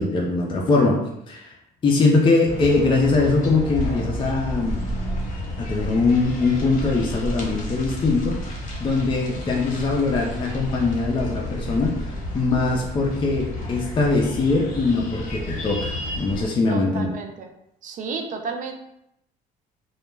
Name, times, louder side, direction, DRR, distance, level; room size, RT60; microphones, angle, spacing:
voice 1, 0.0-1.5 1.8-4.8 5.6-8.4 8.8-11.9 12.3-17.1, left 3 dB, 30° left, -2 dB, 0.4 m, -22 dB
sound 1, 2.4-16.5, left 1 dB, 50° left, 0.9 m, -31 dB
voice 2, 16.7-17.5 17.8-18.7, right 4 dB, 50° right, 4 dB, 0.4 m, -32 dB
2.2 x 2.0 x 3.2 m, 0.79 s
cardioid pair, 110°, 17 cm